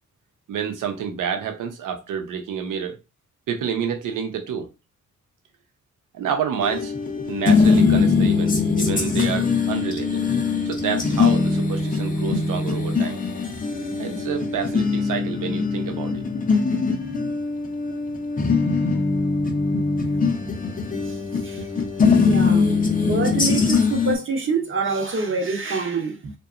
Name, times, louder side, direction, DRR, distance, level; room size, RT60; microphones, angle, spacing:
voice 1, 0.5-3.0 3.5-4.7 6.1-6.9 7.3-10.2 10.6-13.2 14.0-16.2, right 7 dB, 90° right, 0.6 m, -29 dB
sound 1, 6.6-24.1, left 4 dB, 30° left, 0.5 m, -22 dB
voice 2, 22.2-22.7 23.0-26.3, right 4 dB, 45° right, 0.6 m, -26 dB
2.7 x 2.2 x 2.4 m
wide cardioid pair, 115°, 31 cm